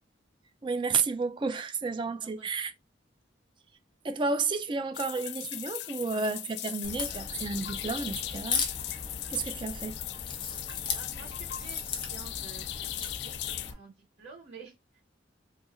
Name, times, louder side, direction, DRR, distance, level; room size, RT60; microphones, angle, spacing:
voice 1, 0.6-2.7 4.0-8.6 8.9-9.0 9.3-10.0, right 4 dB, 25° right, 0.4 m, -31 dB
sound 1, 4.9-13.7, left 13 dB, 65° left, 0.3 m, -38 dB
Crack, 6.8-13.7, left 5 dB, 25° left, 0.8 m, -37 dB
voice 2, 10.9-15.0, right 4 dB, 60° right, 1.2 m, -50 dB
2.7 x 2.5 x 4.1 m
head